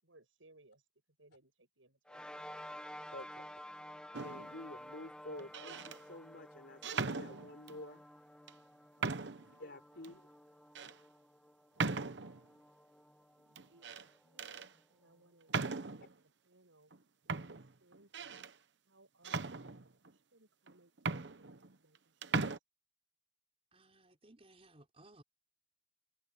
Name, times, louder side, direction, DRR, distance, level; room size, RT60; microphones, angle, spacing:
voice 1, 0.0-0.8 1.2-2.5 13.7-14.5 14.9-15.8 16.1-16.9 17.2-18.4 18.9-22.5, right 2 dB, 85° right, 7.8 m, -66 dB
sound 1, 2.1-14.8, left 1 dB, 5° left, 1.3 m, -52 dB
voice 2, 3.1-3.4 4.2-8.0 9.6-10.3, left 1 dB, 60° left, 4.3 m, -49 dB
sound 2, 4.1-4.6 5.4-6.0 6.8-7.8 8.5-8.6 9.0-9.5 10.0-10.1 10.8-10.9 11.8-12.4 13.6-14.1 14.4-14.7 15.5-16.1 16.9-17.0 17.3-18.5 19.2-20.1 20.7-20.8 21.0-22.0 22.2-22.6, right 4 dB, 60° right, 1.0 m, -38 dB
voice 3, 23.7-25.2, right 1 dB, 30° right, 5.2 m, -61 dB
head